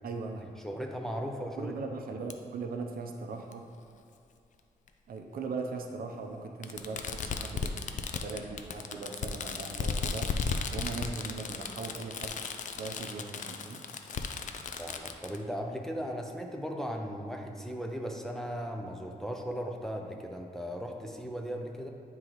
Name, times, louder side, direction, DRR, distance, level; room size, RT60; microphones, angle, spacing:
voice 1, 0.0-0.5 1.6-3.6 5.1-7.8 8.2-10.3 10.7-12.4 12.7-13.8, right 4 dB, 75° right, 3 dB, 0.6 m, -39 dB
voice 2, 0.6-1.7 14.8-21.9, equal, 5° left, 1 dB, 0.6 m, -37 dB
Fireworks, 2.3-2.4 3.5-3.6 4.9-5.0 6.6-15.4, left 5 dB, 55° left, 0.4 m, -35 dB
9.4 x 3.7 x 3.1 m, 2.5 s
cardioid pair, 100°, 15 cm